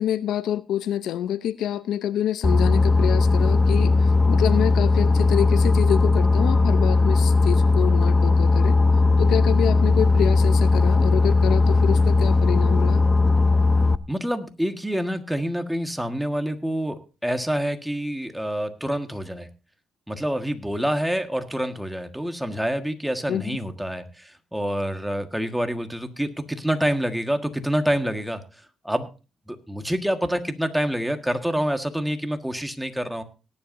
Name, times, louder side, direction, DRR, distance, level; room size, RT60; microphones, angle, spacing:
voice 1, 0.0-8.8 9.2-13.0 23.3-23.5, left 10 dB, 80° left, 15 dB, 0.6 m, -27 dB
Boat Water vehicle, 2.4-14.0, left 3 dB, 20° left, 0.6 m, -18 dB
voice 2, 14.1-19.5 20.1-28.4 28.8-29.1 29.5-33.2, equal, 5° right, 6 dB, 1.6 m, -27 dB
18.0 x 10.5 x 2.7 m, 0.32 s
cardioid pair, 90°, 0 cm